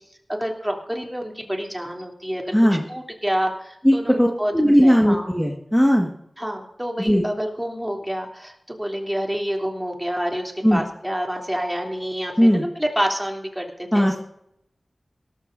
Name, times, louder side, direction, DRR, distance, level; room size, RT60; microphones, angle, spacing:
voice 1, 0.3-2.5 2.9-4.5 4.8-5.3 6.4-14.1, equal, 10° right, 1 dB, 3.1 m, -28 dB
voice 2, 2.5-2.8 3.8-4.3 4.5-6.1 7.0-7.2 10.6-10.8 12.4-12.6 13.9-14.2, equal, 5° left, 0 dB, 1.7 m, -17 dB
18.5 x 13.0 x 2.7 m, 0.77 s
cardioid pair, 40°, 0 cm